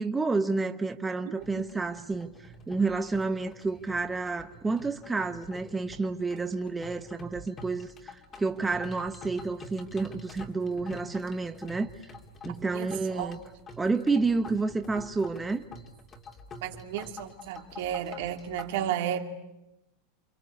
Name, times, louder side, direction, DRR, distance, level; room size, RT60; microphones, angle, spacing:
voice 1, 0.0-2.3 2.7-11.9 12.4-13.4 13.8-15.6, right 3 dB, 10° right, 1.0 m, -30 dB
sound 1, 1.4-18.9, left 2 dB, 25° left, 2.6 m, -47 dB
voice 2, 16.6-19.4, right 10 dB, 70° right, 2.7 m, -33 dB
28.5 x 25.5 x 8.3 m
supercardioid pair, 145°, 0 cm